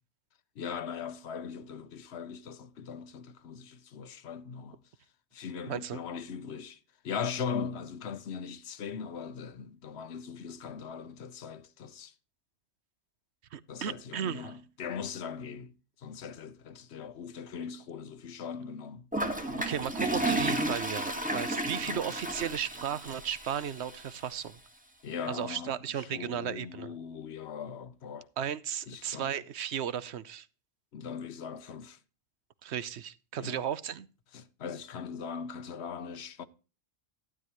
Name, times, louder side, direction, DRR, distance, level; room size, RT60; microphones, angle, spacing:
voice 1, 0.6-4.8 5.3-6.8 7.0-12.1 13.7-15.7 16.0-19.1 19.5-19.6 21.8-22.1 25.0-28.3 28.9-29.3 30.9-32.0 33.4-33.6 34.3-36.5, left 6 dB, 80° left, 1.1 m, -40 dB
voice 2, 5.7-6.0 13.5-14.5 19.6-24.6 25.3-26.9 28.4-30.5 32.6-34.1, right 9 dB, 85° right, 1.0 m, -35 dB
Toilet flush, 19.1-24.2, right 1 dB, 10° right, 1.5 m, -33 dB
12.5 x 10.0 x 3.0 m
omnidirectional pair, 1.1 m